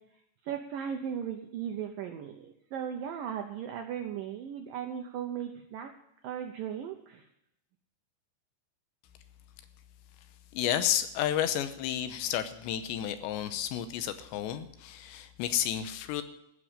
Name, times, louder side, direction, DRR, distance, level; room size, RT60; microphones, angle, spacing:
voice 1, 0.4-5.9 6.2-7.3, right 8 dB, 80° right, 5 dB, 2.0 m, -37 dB
voice 2, 10.5-16.2, left 10 dB, 85° left, 10 dB, 3.0 m, -31 dB
16.0 x 6.3 x 8.9 m, 0.80 s
omnidirectional pair, 5.2 m